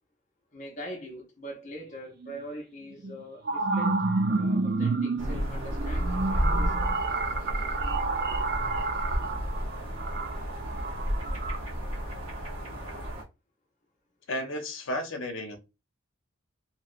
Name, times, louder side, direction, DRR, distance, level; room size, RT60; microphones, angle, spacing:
voice 1, 0.5-7.0 8.5-9.7, equal, 35° left, 0.7 m, -43 dB
sound 1, 2.2-2.3 3.0-11.6, right 3 dB, 45° right, 0.4 m, -29 dB
sound 2, 5.2-13.2, equal, 75° right, 1.0 m, -32 dB
voice 2, 14.3-15.6, left 1 dB, 70° left, 0.8 m, -33 dB
3.0 x 2.8 x 2.5 m
head